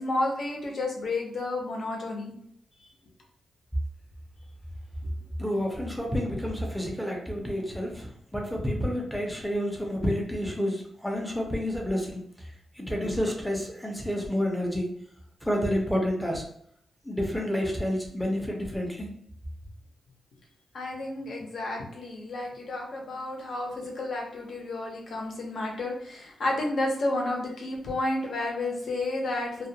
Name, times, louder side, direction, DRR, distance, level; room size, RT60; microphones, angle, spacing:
voice 1, 0.0-2.4 2.8-2.9 6.3-6.4 20.7-29.7, left 2 dB, 60° left, 0 dB, 0.7 m, -31 dB
voice 2, 5.4-8.1 8.3-12.2 12.8-14.9 15.4-16.4 17.0-19.1, equal, ahead, 0 dB, 0.6 m, -29 dB
2.3 x 2.2 x 2.7 m, 0.69 s
wide cardioid pair, 135°, 0 cm